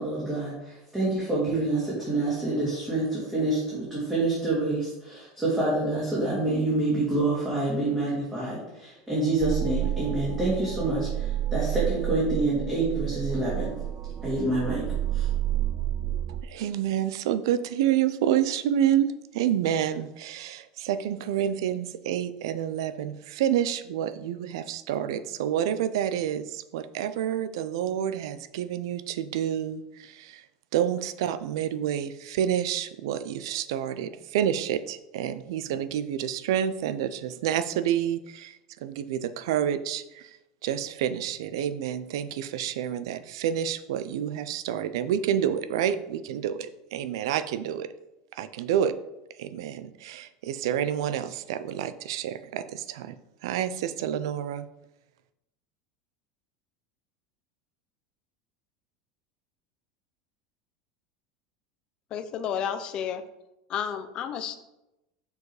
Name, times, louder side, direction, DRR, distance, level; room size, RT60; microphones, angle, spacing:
voice 1, 0.0-13.7 14.2-14.8 15.1-15.3, right 2 dB, 10° right, -8 dB, 2.3 m, -27 dB
sound 1, 9.4-16.4, right 12 dB, 30° right, 0.3 m, -30 dB
voice 2, 16.3-30.5 30.7-47.9 48.3-48.9 49.4-53.2 53.4-54.7, right 10 dB, 80° right, 13 dB, 0.5 m, -28 dB
voice 3, 62.1-63.2 63.7-64.6, left 8 dB, 35° left, 11 dB, 0.6 m, -31 dB
6.5 x 4.8 x 4.9 m, 0.92 s
supercardioid pair, 155°, 2 cm